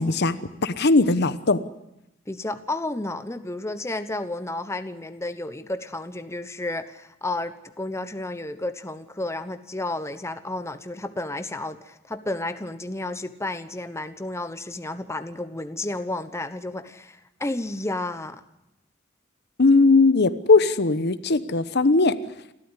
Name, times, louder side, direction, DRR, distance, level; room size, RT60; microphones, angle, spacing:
voice 1, 0.0-1.6 19.6-22.2, left 3 dB, 55° left, 13 dB, 1.0 m, -19 dB
voice 2, 2.3-18.4, left 2 dB, 15° left, 10 dB, 1.0 m, -32 dB
29.0 x 13.5 x 9.9 m, 0.88 s
head